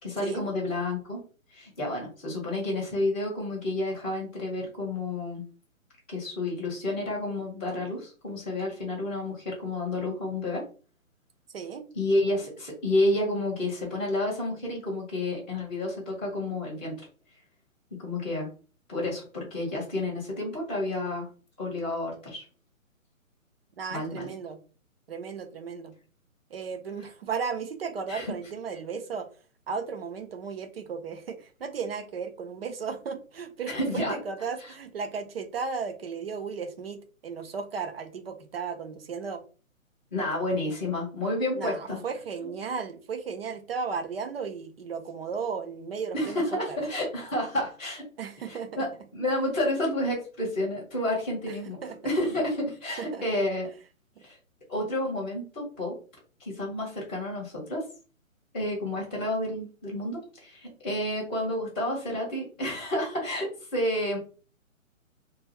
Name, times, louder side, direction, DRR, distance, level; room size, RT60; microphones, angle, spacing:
voice 1, 0.0-1.2 1.5-5.4 6.1-10.6 11.9-16.9 18.0-18.5 18.9-21.3 21.6-22.4 23.9-24.3 28.1-28.3 33.7-34.2 34.6-34.7 40.1-42.0 42.4-42.5 46.1-48.0 48.5-53.7 54.2-54.4 54.7-55.9 56.4-57.8 58.5-64.2, left 1 dB, 10° left, -13 dB, 0.5 m, -30 dB
voice 2, 23.8-24.6 25.1-25.9 26.5-29.3 29.7-39.4 41.5-46.4 46.7-46.8 48.2-48.8 51.8-52.0 53.0-53.2, right 5 dB, 45° right, 7 dB, 0.5 m, -35 dB
2.2 x 2.2 x 3.3 m, 0.37 s
figure-of-eight pair, 145°, 41 cm